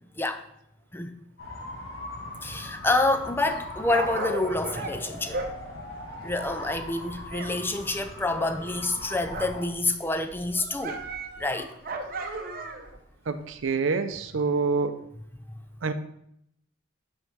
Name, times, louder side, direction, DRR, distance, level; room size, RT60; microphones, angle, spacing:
sound 1, 1.4-9.7, left 1 dB, 85° left, 2.1 m, -40 dB
voice 1, 2.4-5.4 6.2-11.0 11.4-11.7 12.0-12.1, left 2 dB, 10° left, 0.4 m, -27 dB
Dog, 3.6-7.5 7.8-9.7 10.0-13.0 13.6-13.7, right 3 dB, 45° right, 0.8 m, -37 dB
voice 2, 13.3-14.9 15.8-15.9, right 4 dB, 75° right, 0.5 m, -26 dB
5.8 x 5.5 x 4.6 m
head